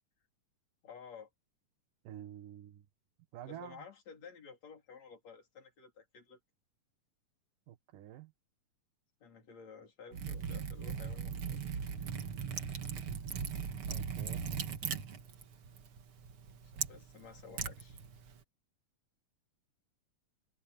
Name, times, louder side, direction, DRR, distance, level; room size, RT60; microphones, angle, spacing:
voice 1, 0.8-1.3 3.5-6.4 9.2-11.6 16.5-18.0, left 6 dB, 55° left, 4.8 m, -53 dB
voice 2, 2.0-2.8 3.3-3.8 7.7-8.3 13.9-14.4, right 11 dB, 80° right, 3.0 m, -48 dB
Liquid, 10.1-18.4, right 7 dB, 50° right, 2.1 m, -39 dB
omnidirectional pair, 3.8 m